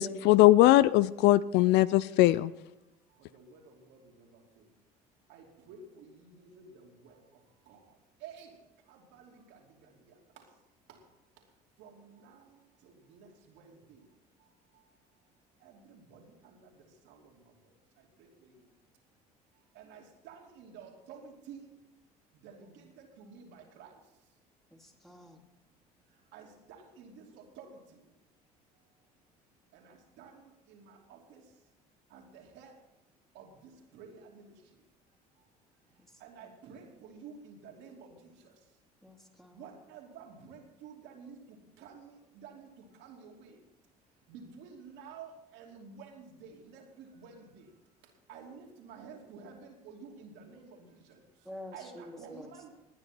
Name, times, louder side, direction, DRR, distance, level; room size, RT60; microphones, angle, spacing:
voice 1, 0.0-2.5, left 16 dB, 60° left, 18 dB, 0.4 m, -21 dB
voice 2, 3.1-4.7 5.3-10.6 10.9-11.1 11.4-11.5 11.8-14.1 14.4-15.0 15.6-18.7 19.7-21.8 22.3-24.1 26.1-28.1 28.7-28.9 29.7-31.6 32.1-32.8 33.3-34.8 35.1-35.5 35.7-38.7 39.5-43.7 44.3-47.8 48.0-52.7, right 5 dB, 65° right, 0 dB, 2.9 m, -52 dB
voice 3, 24.7-25.4 39.0-39.6 51.4-52.5, left 1 dB, ahead, 2 dB, 2.7 m, -48 dB
19.5 x 9.7 x 4.4 m, 0.95 s
hypercardioid pair, 60°, 20 cm